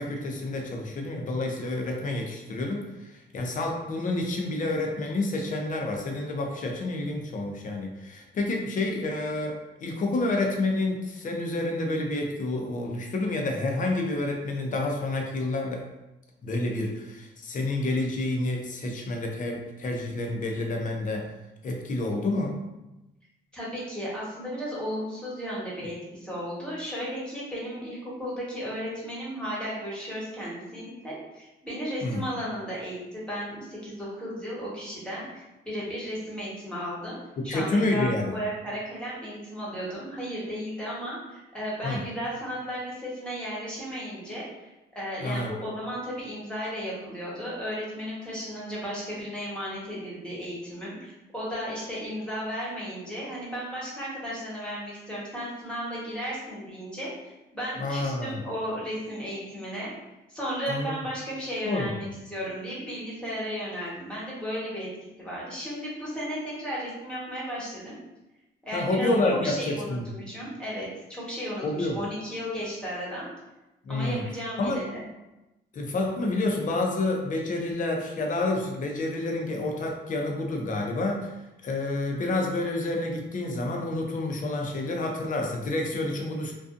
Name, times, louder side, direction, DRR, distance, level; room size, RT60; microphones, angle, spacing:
voice 1, 0.0-15.8 16.4-21.3 21.6-22.6 32.0-32.2 37.4-38.4 41.8-42.0 45.2-45.6 57.8-58.4 60.7-61.0 61.6-62.1 68.7-70.0 71.6-72.0 73.8-74.2 74.6-74.8 75.7-81.3 81.6-86.5, left 2 dB, 40° left, 2 dB, 0.6 m, -29 dB
voice 2, 23.5-37.2 37.4-44.7 44.9-59.9 60.3-64.9 65.2-68.0 68.6-73.3 73.9-75.0, equal, 5° left, -7 dB, 1.1 m, -34 dB
2.5 x 2.3 x 2.5 m, 0.98 s
cardioid pair, 90°, 20 cm